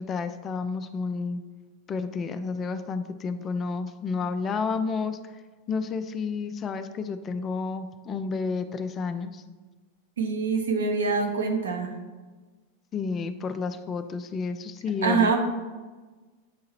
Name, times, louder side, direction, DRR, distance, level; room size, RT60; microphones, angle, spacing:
voice 1, 0.0-1.4 1.9-5.3 5.7-9.4 12.9-15.4, left 4 dB, 25° left, 10 dB, 0.3 m, -31 dB
voice 2, 10.2-12.0 15.0-15.4, right 4 dB, 65° right, 3 dB, 0.8 m, -24 dB
8.0 x 2.8 x 4.2 m, 1.3 s
figure-of-eight pair, 90°, 0 cm